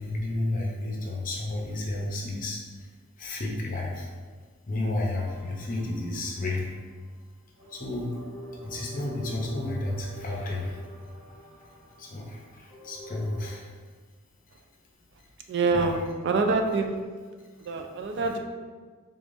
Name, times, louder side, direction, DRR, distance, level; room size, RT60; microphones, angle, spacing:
voice 1, 0.0-2.9 3.2-4.1 4.7-6.7 7.7-8.1 8.6-10.8 11.6-11.7 12.0-13.7 15.7-16.0, left 2 dB, 40° left, -2 dB, 0.7 m, -32 dB
sound 1, 5.1-6.8 7.6-13.5, equal, 35° right, 1.1 m, -46 dB
voice 2, 15.5-17.0 17.6-18.4, right 3 dB, 55° right, 5 dB, 0.3 m, -26 dB
3.7 x 3.5 x 2.5 m, 1.5 s
head